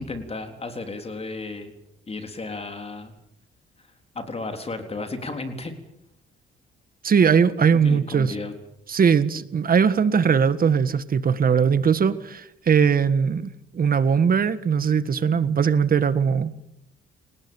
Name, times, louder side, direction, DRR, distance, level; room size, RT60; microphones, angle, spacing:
voice 1, 0.0-1.7 2.1-3.1 4.2-5.7 7.7-8.5, left 3 dB, 30° left, 6 dB, 4.0 m, -33 dB
voice 2, 7.0-8.4 8.9-16.5, right 6 dB, 45° right, 13 dB, 1.7 m, -20 dB
29.5 x 18.5 x 7.3 m, 0.77 s
cardioid pair, 90°, 20 cm